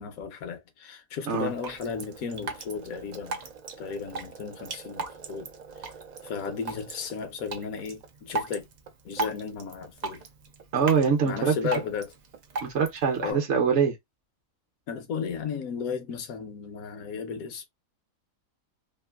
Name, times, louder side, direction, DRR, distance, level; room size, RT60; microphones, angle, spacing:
voice 1, 0.0-3.4 3.8-5.5 6.2-8.6 9.0-10.2 11.2-12.1 13.2-13.4 14.9-17.7, left 6 dB, 80° left, 1.2 m, -34 dB
Drip, 1.3-13.3, right 4 dB, 80° right, 0.4 m, -38 dB
voice 2, 10.7-11.5 12.6-14.0, right 6 dB, 60° right, 0.9 m, -23 dB
3.1 x 2.4 x 2.3 m
omnidirectional pair, 1.5 m